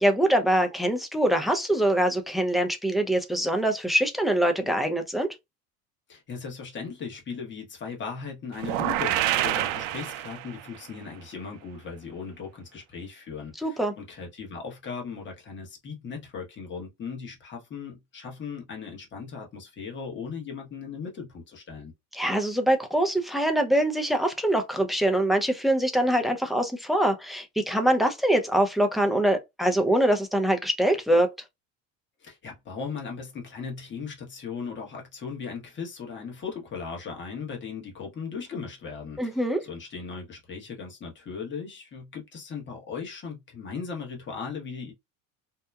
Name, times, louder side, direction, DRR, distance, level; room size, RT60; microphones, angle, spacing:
voice 1, 0.0-5.3 13.6-13.9 22.1-31.3 39.2-39.6, right 1 dB, ahead, 0.5 m, -24 dB
voice 2, 6.1-21.9 32.2-44.9, left 5 dB, 30° left, 1.1 m, -38 dB
sound 1, 8.6-10.8, right 14 dB, 80° right, 0.5 m, -27 dB
2.9 x 2.1 x 2.2 m
supercardioid pair, 105°, 37 cm